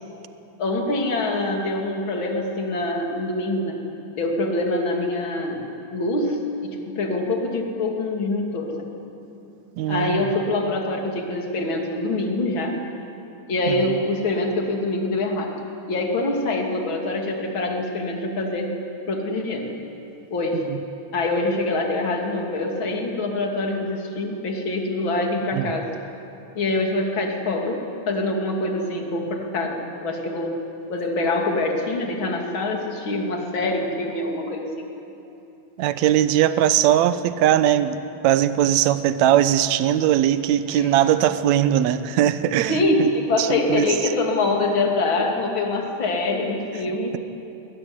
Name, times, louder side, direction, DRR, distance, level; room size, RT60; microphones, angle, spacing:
voice 1, 0.6-3.8 4.2-8.7 9.9-12.8 13.5-15.5 15.9-18.7 19.1-19.7 20.3-20.6 21.1-25.9 26.5-30.5 30.9-34.8 40.7-40.9 42.7-47.2, left 2 dB, 45° left, 1 dB, 3.3 m, -25 dB
voice 2, 9.8-10.3 13.7-13.8 25.5-25.7 35.8-38.0 38.2-43.1 43.4-43.9, right 11 dB, 75° right, 12 dB, 2.1 m, -20 dB
22.0 x 20.0 x 9.8 m, 3.0 s
omnidirectional pair, 3.3 m